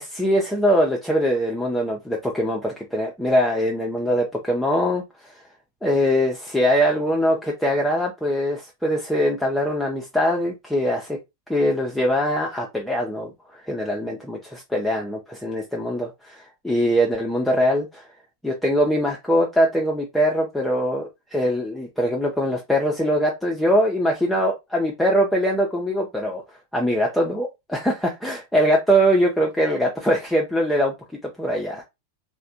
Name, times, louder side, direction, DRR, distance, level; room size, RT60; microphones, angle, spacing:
voice 1, 0.0-5.3 5.8-11.2 11.5-18.1 18.4-26.4 26.7-30.9 31.4-31.8, equal, 5° left, 0.5 m, -22 dB
3.2 x 2.1 x 2.5 m
figure-of-eight pair, 90°, 0 cm